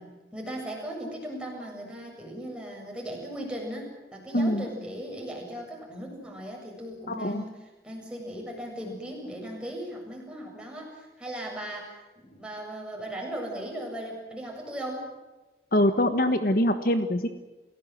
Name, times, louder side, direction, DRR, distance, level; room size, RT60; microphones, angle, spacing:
voice 1, 0.0-7.5 7.8-15.1, right 1 dB, 5° right, -1 dB, 7.5 m, -38 dB
voice 2, 4.3-4.6 7.1-7.4 15.7-17.3, left 1 dB, 50° left, 8 dB, 1.4 m, -24 dB
29.0 x 17.0 x 7.8 m, 1.1 s
head